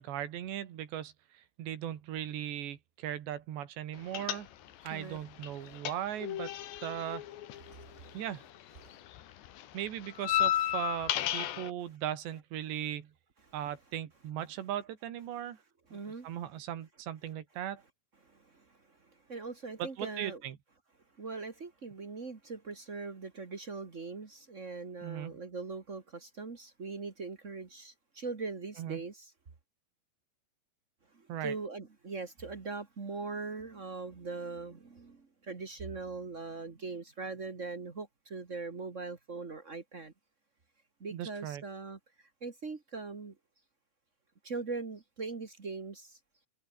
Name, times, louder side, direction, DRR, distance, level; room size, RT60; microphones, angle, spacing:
voice 1, 0.0-4.5 4.8-6.5 6.8-7.2 8.1-8.4 9.7-13.1 13.5-15.6 15.9-16.0 16.2-17.8 19.8-20.6 25.0-25.4 28.8-29.0 31.3-31.5 41.1-41.6, right 11 dB, 85° right, 4.4 m, -38 dB
sound 1, 4.1-4.9 5.2-8.6 8.8-11.7, left 12 dB, 85° left, 4.0 m, -33 dB
voice 2, 4.8-5.2 5.6-5.8 7.0-7.1 7.5-9.0 11.8-11.9 12.2-12.3 12.7-12.8 13.4-13.8 14.1-14.6 15.9-16.6 17.2-17.4 17.8-17.9 18.1-20.5 21.2-29.3 31.1-40.1 41.0-43.3 44.4-46.2, right 4 dB, 70° right, 0.7 m, -42 dB
omnidirectional pair, 4.8 m